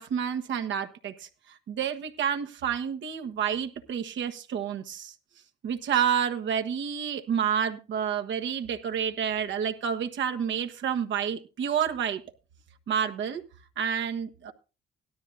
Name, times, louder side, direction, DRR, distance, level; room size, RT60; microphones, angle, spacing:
voice 1, 0.0-5.1 5.6-12.2 12.9-13.4 13.8-14.5, right 8 dB, 70° right, 7 dB, 1.4 m, -29 dB
17.0 x 12.5 x 2.7 m, 0.32 s
cardioid pair, 90°, 20 cm